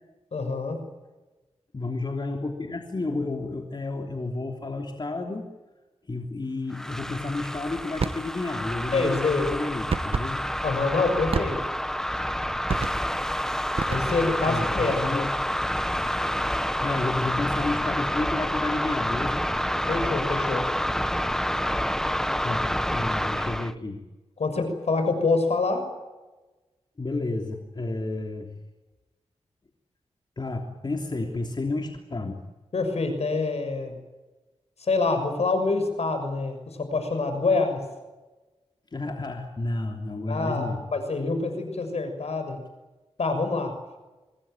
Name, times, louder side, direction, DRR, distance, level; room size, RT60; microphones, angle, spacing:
voice 1, 0.3-0.8 8.9-9.5 10.6-11.6 13.9-15.2 19.9-20.7 24.4-25.9 32.7-34.0 34.8-37.9 40.3-42.6 43.2-43.8, left 3 dB, 70° left, 8 dB, 6.5 m, -26 dB
voice 2, 1.7-5.5 6.1-10.4 14.4-15.3 16.8-19.4 22.4-24.0 27.0-28.5 30.4-32.4 38.9-40.8, left 2 dB, 40° left, 2 dB, 3.3 m, -31 dB
Chasing monster, 6.7-23.7, equal, 5° left, 1.0 m, -28 dB
sound 1, 8.0-8.3 9.9-10.3 11.3-11.8 12.7-13.2 13.8-14.4, right 4 dB, 60° right, 1.5 m, -29 dB
25.0 x 20.5 x 9.1 m, 1.2 s
wide cardioid pair, 70°, 11 cm